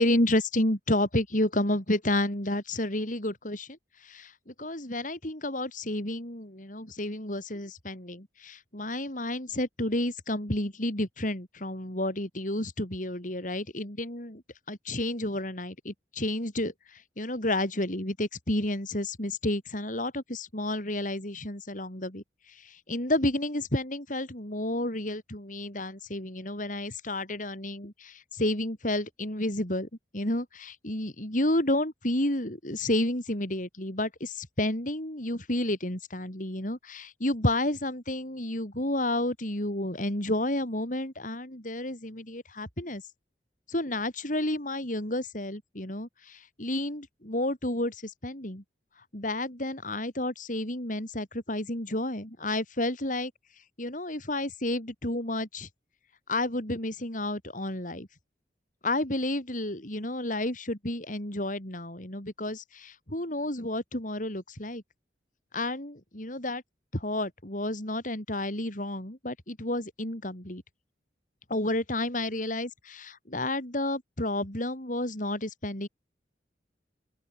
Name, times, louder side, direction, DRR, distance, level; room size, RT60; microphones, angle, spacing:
voice 1, 0.0-3.8 4.0-14.4 14.7-29.9 30.1-43.0 43.7-48.6 49.1-53.3 53.8-55.7 56.3-58.1 58.8-64.8 65.5-66.6 66.9-70.6 71.5-75.9, left 1 dB, 50° left, 5.6 m, -31 dB
open air
head